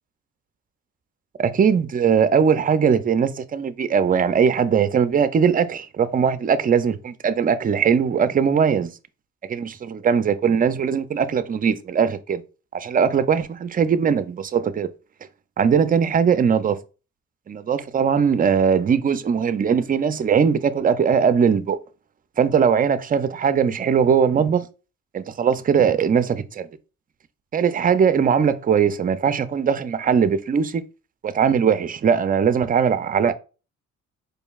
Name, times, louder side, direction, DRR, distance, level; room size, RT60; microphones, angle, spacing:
voice 1, 1.4-8.9 9.5-12.4 12.7-14.9 15.6-16.8 17.5-21.8 22.4-24.6 25.1-26.7 27.5-30.8 31.2-33.3, right 7 dB, 30° right, 0.4 m, -20 dB
4.4 x 3.2 x 2.3 m
cardioid pair, 90°, 30 cm